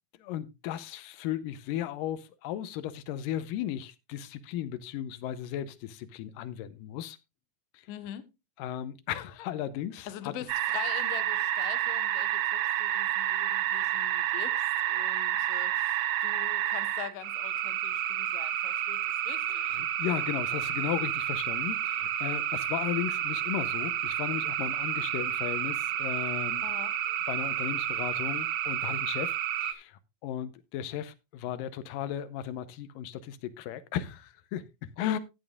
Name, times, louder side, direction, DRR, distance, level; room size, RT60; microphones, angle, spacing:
voice 1, 0.2-7.2 7.7-7.9 8.6-10.3 19.5-26.7 27.3-35.2, left 11 dB, 90° left, 2.4 m, -36 dB
voice 2, 7.9-8.2 10.0-19.8 26.6-26.9 35.0-35.2, left 12 dB, 60° left, 1.8 m, -43 dB
sound 1, 10.5-29.7, right 11 dB, 75° right, 1.6 m, -30 dB
15.5 x 9.7 x 2.4 m
omnidirectional pair, 3.9 m